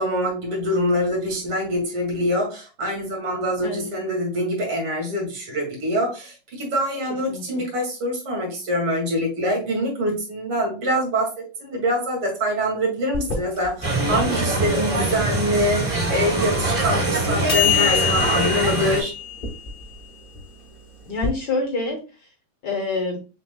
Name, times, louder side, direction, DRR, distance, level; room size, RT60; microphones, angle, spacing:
voice 1, 0.0-19.1, equal, 85° right, -1 dB, 3.1 m, -24 dB
voice 2, 3.6-3.9 7.1-7.6 21.1-22.0 22.6-23.2, left 3 dB, 60° left, 3 dB, 1.6 m, -27 dB
sound 1, 13.1-21.3, left 7 dB, 35° left, 1.0 m, -27 dB
sound 2, 13.8-19.0, right 2 dB, 15° right, 1.6 m, -23 dB
6.2 x 3.6 x 2.2 m, 0.32 s
omnidirectional pair, 2.4 m